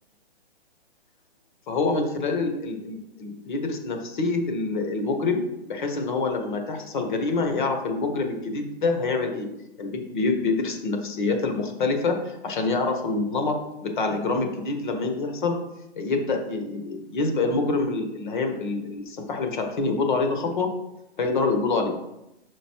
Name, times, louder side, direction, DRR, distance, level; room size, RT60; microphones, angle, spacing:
voice 1, 1.7-9.5 9.8-15.6 16.0-20.7 21.2-21.9, left 3 dB, 50° left, 5 dB, 1.2 m, -26 dB
5.2 x 5.1 x 4.5 m, 0.87 s
hypercardioid pair, 160°, 31 cm